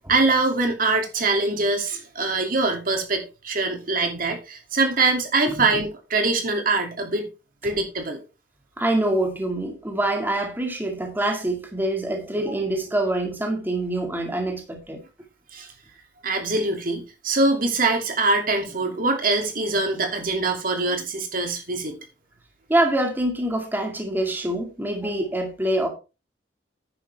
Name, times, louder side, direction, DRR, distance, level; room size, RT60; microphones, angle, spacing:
voice 1, 0.1-7.2 7.6-8.2 15.5-15.7 16.2-22.0, right 3 dB, 55° right, 2.6 m, -23 dB
voice 2, 5.5-5.8 7.6-7.7 8.8-15.0 22.7-25.9, right 1 dB, 10° right, 2.2 m, -25 dB
10.5 x 9.1 x 3.5 m
head